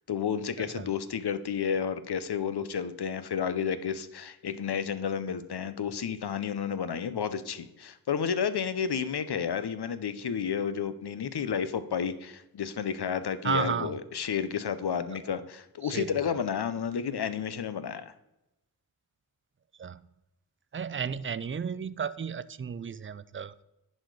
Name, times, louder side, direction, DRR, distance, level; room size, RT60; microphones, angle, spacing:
voice 1, 0.1-18.1, left 7 dB, 90° left, 13 dB, 0.6 m, -31 dB
voice 2, 0.6-0.9 13.4-14.0 15.1-15.2 15.8-16.4 19.8-20.0 20.7-23.6, right 6 dB, 35° right, 17 dB, 0.4 m, -33 dB
10.5 x 4.3 x 4.6 m, 0.91 s
wide cardioid pair, 40°, 38 cm